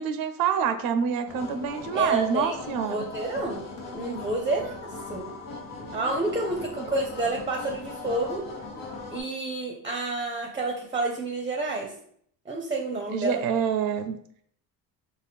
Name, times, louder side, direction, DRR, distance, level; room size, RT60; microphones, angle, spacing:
voice 1, 0.0-3.0 6.8-6.9 13.1-14.2, right 7 dB, 75° right, 8 dB, 0.6 m, -27 dB
sound 1, 1.3-9.2, left 3 dB, 85° left, 1.1 m, -39 dB
voice 2, 1.9-3.6 3.9-4.8 5.1-5.3 5.9-8.5 9.1-11.9 12.5-13.4, right 2 dB, 15° right, 1 dB, 0.6 m, -29 dB
4.2 x 2.1 x 3.4 m, 0.64 s
cardioid pair, 100°, 36 cm